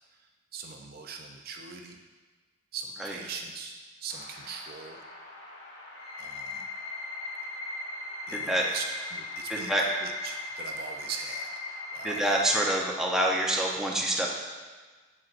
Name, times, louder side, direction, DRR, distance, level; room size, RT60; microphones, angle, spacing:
voice 1, 0.5-2.0 2.7-5.0 6.2-6.7 8.3-8.8 9.1-9.7 10.0-12.5, right 5 dB, 45° right, 3 dB, 0.5 m, -41 dB
sound 1, 4.1-12.8, left 3 dB, 50° left, 2.2 m, -39 dB
voice 2, 8.3-8.7 9.5-9.8 12.0-14.3, right 1 dB, 5° right, -2 dB, 0.6 m, -26 dB
7.5 x 7.3 x 2.5 m, 1.4 s
head